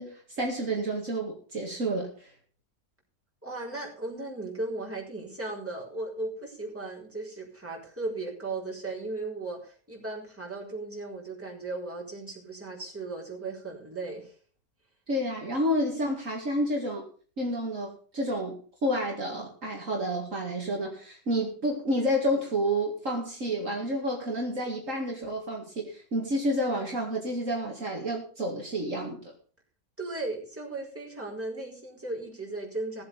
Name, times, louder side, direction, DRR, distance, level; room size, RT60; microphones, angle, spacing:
voice 1, 0.0-2.3 15.1-17.0 17.4-29.3, equal, 55° right, 0 dB, 2.5 m, -30 dB
voice 2, 3.4-14.3 30.0-33.0, right 2 dB, 10° right, -4 dB, 4.3 m, -36 dB
16.5 x 7.8 x 5.4 m, 0.40 s
omnidirectional pair, 1.7 m